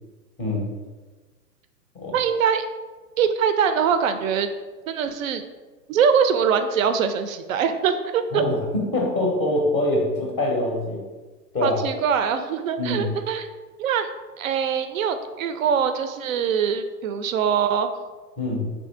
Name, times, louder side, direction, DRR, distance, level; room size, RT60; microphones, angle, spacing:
voice 1, 2.1-2.6 3.2-4.5 4.9-5.4 5.9-8.4 11.6-13.5 13.8-14.1 14.4-17.9, right 7 dB, 55° right, 9 dB, 0.5 m, -23 dB
voice 2, 8.3-11.0 11.5-11.8 12.8-13.1 18.4-18.6, left 1 dB, 10° left, -3 dB, 0.6 m, -24 dB
3.2 x 2.6 x 4.3 m, 1.3 s
hypercardioid pair, 110°, 49 cm